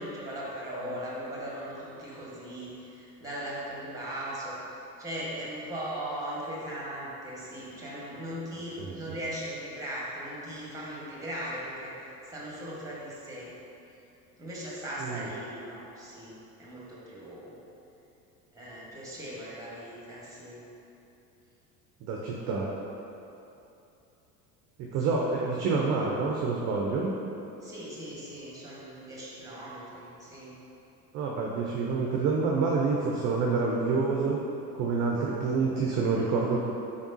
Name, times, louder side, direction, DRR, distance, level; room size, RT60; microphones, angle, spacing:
voice 1, 0.0-4.6 5.0-11.9 12.2-13.5 14.4-17.5 18.5-20.6 25.0-25.2 27.6-30.5, equal, 5° right, -6 dB, 1.0 m, -38 dB
voice 2, 22.0-22.7 24.8-27.1 31.1-34.4 34.8-36.6, right 4 dB, 35° right, -2 dB, 0.4 m, -27 dB
3.8 x 3.5 x 2.6 m, 2.8 s
figure-of-eight pair, 70°, 49 cm